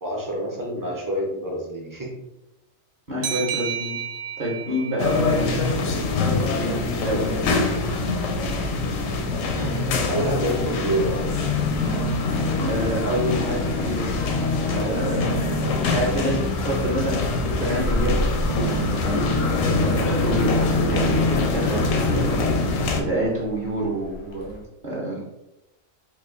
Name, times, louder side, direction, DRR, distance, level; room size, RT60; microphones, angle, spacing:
voice 1, 0.0-2.1 9.5-11.4 15.6-15.8, right 1 dB, 25° right, -2 dB, 0.4 m, -28 dB
voice 2, 3.1-4.0 4.4-5.6 6.4-7.6 12.6-14.2 14.7-15.3 15.8-18.3 18.6-25.2, right 1 dB, 45° right, -7 dB, 0.8 m, -28 dB
sound 1, 3.2-6.6, right 8 dB, 75° right, 0.9 m, -33 dB
sound 2, 5.0-23.0, left 3 dB, 85° left, 1.0 m, -25 dB
sound 3, 11.3-16.0 17.7-23.2 24.1-24.2 24.4-24.5, left 3 dB, 55° left, 0.5 m, -27 dB
3.1 x 2.2 x 3.6 m, 0.92 s
omnidirectional pair, 1.4 m